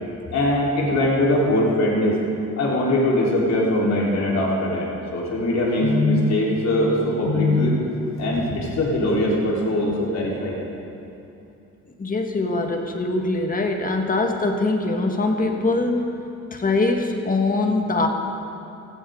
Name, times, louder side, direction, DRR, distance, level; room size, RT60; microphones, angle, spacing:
voice 1, 0.3-2.2 2.6-7.7 8.2-10.6, left 1 dB, 60° left, -4 dB, 4.0 m, -21 dB
voice 2, 12.0-16.1 16.5-18.1, left 2 dB, 30° left, 3 dB, 1.7 m, -22 dB
16.5 x 14.5 x 3.8 m, 2.8 s
cardioid pair, 90°, 30 cm